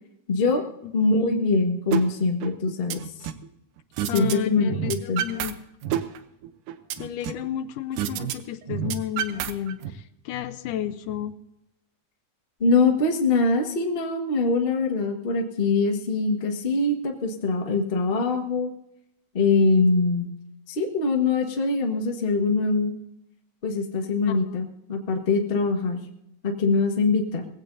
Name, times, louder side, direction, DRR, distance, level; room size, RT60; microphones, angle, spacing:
voice 1, 0.3-0.6 0.9-3.0 4.0-5.2 12.6-18.7 19.3-20.3 20.7-22.9 23.6-26.0 26.4-27.5, left 3 dB, 45° left, 2 dB, 0.7 m, -23 dB
sound 1, 1.9-2.0 2.4-3.5 4.0-4.4 4.6-5.5 5.8-7.5 8.0-8.3 8.6-9.9, right 11 dB, 80° right, 2.3 m, -29 dB
voice 2, 4.1-5.5 7.0-11.3 24.3-24.6, left 10 dB, 80° left, 11 dB, 2.2 m, -32 dB
20.0 x 16.0 x 2.7 m, 0.83 s
omnidirectional pair, 3.8 m